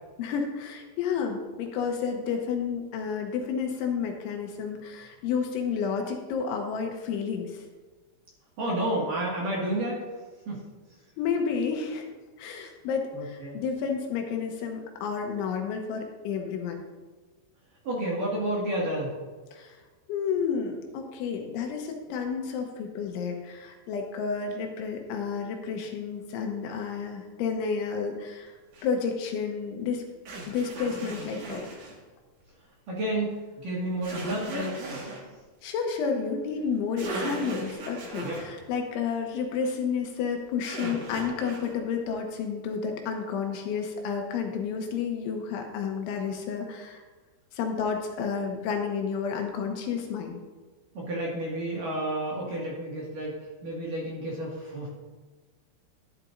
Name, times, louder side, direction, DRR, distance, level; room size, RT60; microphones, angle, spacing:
voice 1, 0.2-7.6 11.2-12.1 12.4-16.8 19.5-19.8 20.1-28.5 28.8-30.0 30.5-31.7 35.6-47.0 47.5-50.4, left 6 dB, 80° left, 3 dB, 3.2 m, -31 dB
voice 2, 8.6-10.0 10.5-10.6 13.1-13.6 17.8-19.1 32.9-33.3 33.6-35.1 38.2-38.4 50.9-54.9, right 1 dB, 55° right, -5 dB, 2.8 m, -31 dB
sound 1, 28.7-28.9 30.3-32.0 34.0-35.2 36.7-36.8 37.0-38.5 40.6-41.7, right 2 dB, 80° right, 1.4 m, -37 dB
12.0 x 11.5 x 2.6 m, 1.3 s
omnidirectional pair, 5.8 m